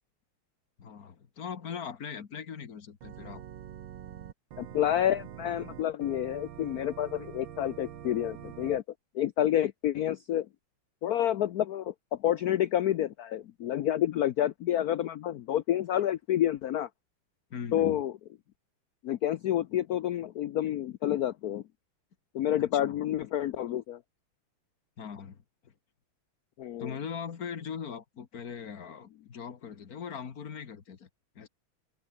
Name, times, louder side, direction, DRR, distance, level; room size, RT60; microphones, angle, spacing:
voice 1, 0.8-3.4 17.5-18.0 22.6-23.0 25.0-25.7 26.8-31.1 31.4-31.5, left 7 dB, 45° left, 1.9 m, -40 dB
Organ, 3.0-8.8, right 10 dB, 65° right, 1.9 m, -45 dB
voice 2, 4.6-8.8 9.1-10.5 11.0-16.9 17.7-18.1 19.0-21.6 22.3-24.0 26.6-26.9, left 11 dB, 80° left, 0.8 m, -29 dB
omnidirectional pair, 2.4 m